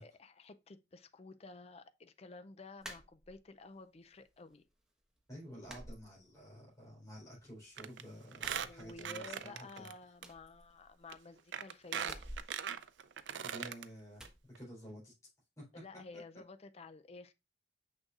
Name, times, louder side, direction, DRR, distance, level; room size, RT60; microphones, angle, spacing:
voice 1, 0.0-4.6 8.4-12.5 15.7-17.3, left 3 dB, 35° left, 0.4 m, -52 dB
sound 1, 2.8-3.7 4.1-4.8 5.0-5.2 5.6-6.8 7.1-7.9 8.3-9.5 9.7-9.8 10.1-11.3 12.0-13.6 14.1-14.4, equal, 5° right, 1.1 m, -52 dB
voice 2, 5.3-9.9 13.3-15.1 15.6-16.0, equal, 20° left, 3.9 m, -51 dB
Squeak, 7.8-8.0 8.3-9.9 10.2-10.3 11.1-11.2 11.5-13.8 14.3-14.4 14.6-14.7, right 8 dB, 85° right, 0.5 m, -40 dB
6.3 x 6.3 x 2.5 m
head